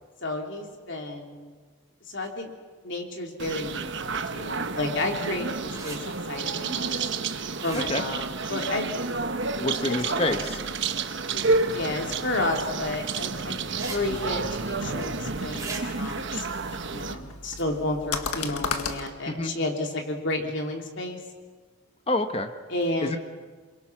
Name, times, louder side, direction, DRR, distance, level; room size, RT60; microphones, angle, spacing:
voice 1, 0.2-1.5 2.1-2.5 2.8-6.9 7.6-8.9 9.6-10.4 11.3-11.4 11.7-16.4 16.9-21.2 22.7-23.2, left 2 dB, 55° left, 2 dB, 3.2 m, -31 dB
sound 1, 3.4-17.1, right 4 dB, 55° right, 1.1 m, -30 dB
sound 2, 5.7-6.0 7.5-8.1 11.7-11.8 13.8-14.0 14.3-14.4 15.5-15.8, right 4 dB, 15° right, 3.3 m, -38 dB
voice 2, 9.6-10.6 19.3-19.5 22.1-22.5 23.0-23.2, left 2 dB, 25° left, 7 dB, 1.2 m, -27 dB
sound 3, 13.8-19.1, left 4 dB, 90° left, 1.7 m, -36 dB
27.5 x 23.0 x 6.0 m, 1.5 s
head